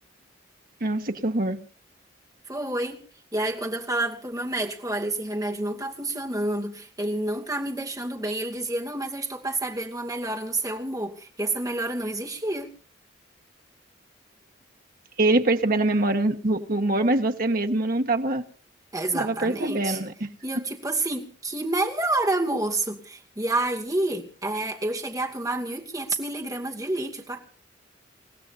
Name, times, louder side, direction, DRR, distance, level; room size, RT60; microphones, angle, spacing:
voice 1, 0.8-1.6 15.2-18.4 19.1-20.6, right 2 dB, 50° right, 1.5 m, -24 dB
voice 2, 2.5-3.0 3.3-12.7 18.9-20.0 20.4-27.4, right 2 dB, 20° right, 2.5 m, -29 dB
29.0 x 16.0 x 2.8 m
head